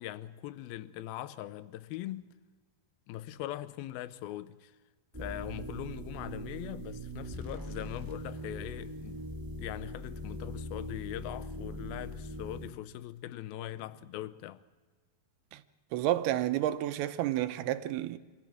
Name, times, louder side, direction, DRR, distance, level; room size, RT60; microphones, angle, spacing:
voice 1, 0.0-2.3 3.1-4.7 5.1-9.2 9.6-14.6, left 14 dB, 80° left, 2.5 m, -41 dB
sound 1, 5.1-12.7, equal, 20° right, 0.5 m, -41 dB
voice 2, 15.9-18.2, right 13 dB, 85° right, 2.8 m, -30 dB
26.5 x 14.0 x 7.7 m
omnidirectional pair, 4.4 m